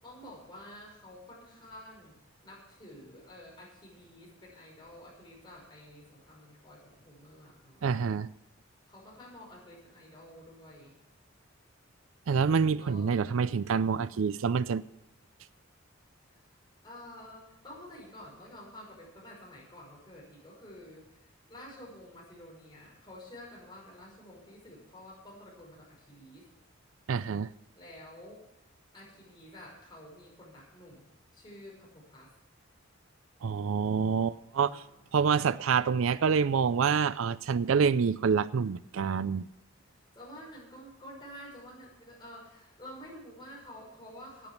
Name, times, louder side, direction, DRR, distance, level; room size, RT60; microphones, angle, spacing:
voice 1, 0.0-2.1 2.4-8.0 8.9-11.0 12.8-13.2 16.5-16.6 16.8-26.5 27.7-28.4 28.9-32.3 34.5-35.1 39.9-44.5, left 1 dB, 20° left, 5.4 m, -50 dB
voice 2, 7.8-8.3 12.3-14.8 27.1-27.5 33.4-34.7 35.1-39.5, right 6 dB, 75° right, 0.4 m, -27 dB
11.0 x 8.9 x 8.0 m
head